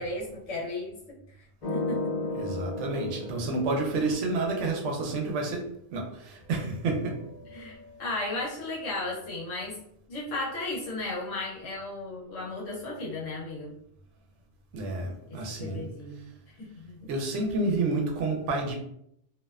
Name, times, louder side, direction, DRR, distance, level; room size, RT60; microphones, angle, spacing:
voice 1, 0.0-2.5 7.5-9.8 10.1-13.7 15.3-16.3 16.6-17.1, left 2 dB, 85° left, -4 dB, 1.1 m, -35 dB
sound 1, 1.6-4.7 6.4-8.1, left 2 dB, 40° left, 0.7 m, -36 dB
voice 2, 2.3-7.2 14.7-15.9 17.1-18.8, right 2 dB, 75° right, 2 dB, 0.9 m, -29 dB
2.6 x 2.0 x 2.3 m, 0.74 s
omnidirectional pair, 1.3 m